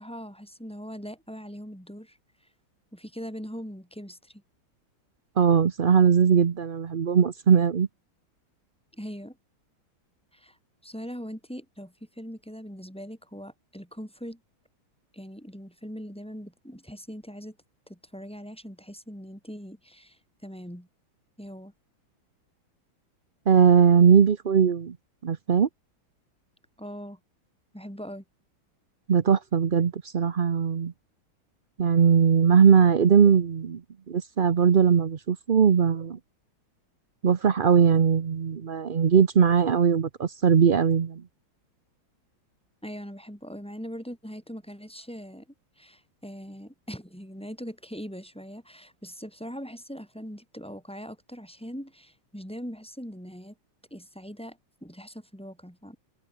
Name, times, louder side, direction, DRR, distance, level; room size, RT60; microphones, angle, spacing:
voice 1, 0.0-2.2 2.9-4.4 8.9-9.4 10.3-10.6 10.8-14.4 15.1-17.6 17.9-20.9 21.4-21.7 26.8-27.2 27.7-28.2 42.8-45.5 45.8-53.5 53.9-56.0, equal, ahead, 6.0 m, -41 dB
voice 2, 5.4-7.9 23.5-25.0 25.2-25.7 29.1-30.9 31.8-33.8 34.1-36.2 37.2-41.2, right 7 dB, 70° right, 0.4 m, -20 dB
omnidirectional pair, 2.3 m